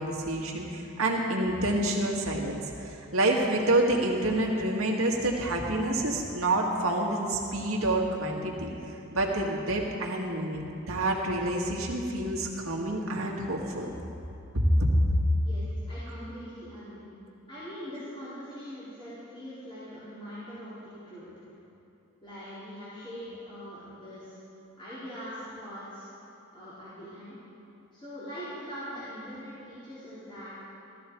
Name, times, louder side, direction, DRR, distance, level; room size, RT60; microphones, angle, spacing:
voice 1, 0.0-8.7 9.1-13.9 14.5-15.2, right 1 dB, 90° right, -1 dB, 2.0 m, -27 dB
voice 2, 15.4-17.0 17.5-21.3 22.2-24.4 24.8-26.1 26.5-27.4 27.9-30.5, equal, 25° left, -12 dB, 3.7 m, -42 dB
16.5 x 13.5 x 4.7 m, 2.8 s
head